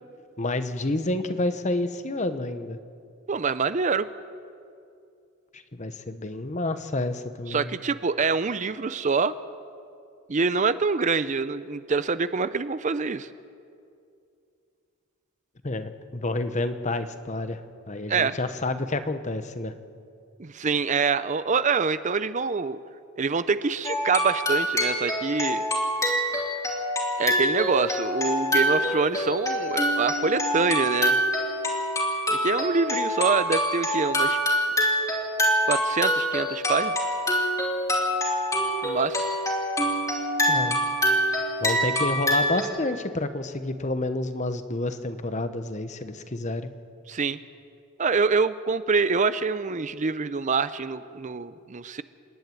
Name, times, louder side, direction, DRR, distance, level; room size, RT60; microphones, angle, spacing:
voice 1, 0.4-2.8 5.5-7.8 15.6-17.6 17.9-19.7 40.5-40.8 41.6-46.7, left 2 dB, 35° left, 10 dB, 1.0 m, -29 dB
voice 2, 3.3-4.1 7.5-9.3 10.3-13.3 18.1-18.4 20.4-22.8 23.2-25.6 27.2-31.2 32.4-34.4 35.7-36.9 38.8-39.2 47.1-47.4 48.0-52.0, right 4 dB, 35° right, 14 dB, 0.5 m, -25 dB
sound 1, 23.8-42.6, equal, 15° left, 3.0 m, -25 dB
28.0 x 11.5 x 9.3 m, 2.5 s
head